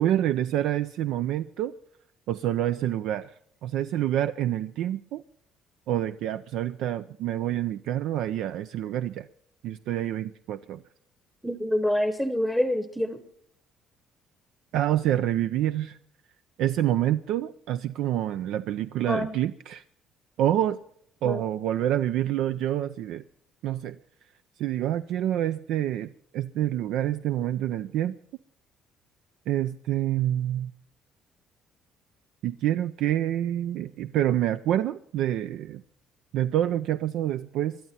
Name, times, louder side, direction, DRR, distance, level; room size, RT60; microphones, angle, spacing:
voice 1, 0.0-1.7 2.3-3.3 3.6-5.2 5.9-9.3 9.6-10.8 14.7-16.0 16.6-19.8 20.4-20.8 21.2-23.2 23.6-24.0 24.6-28.2 29.5-30.7 32.4-35.8 36.3-37.8, right 12 dB, 70° right, 0.5 m, -27 dB
voice 2, 11.4-13.2 19.1-19.3 21.2-21.4, left 1 dB, ahead, 0.9 m, -26 dB
21.5 x 12.5 x 4.2 m
cardioid pair, 145°, 0 cm